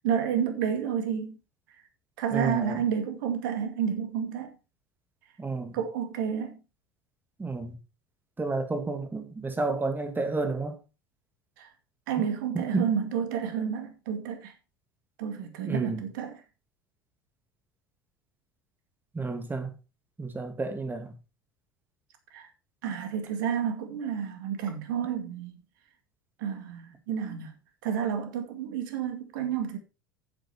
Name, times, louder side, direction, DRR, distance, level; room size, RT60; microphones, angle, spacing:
voice 1, 0.0-1.4 2.2-4.5 5.7-6.6 11.6-11.7 12.1-14.5 15.2-16.4 22.3-22.5 22.8-25.6 26.4-27.5 27.8-29.8, right 8 dB, 65° right, 2.2 m, -30 dB
voice 2, 2.3-2.8 5.4-5.8 7.4-7.8 8.4-10.8 12.5-12.9 15.6-16.0 19.1-19.7 20.2-21.1, right 3 dB, 15° right, 2.6 m, -31 dB
10.0 x 7.8 x 4.5 m
figure-of-eight pair, 70°, 11 cm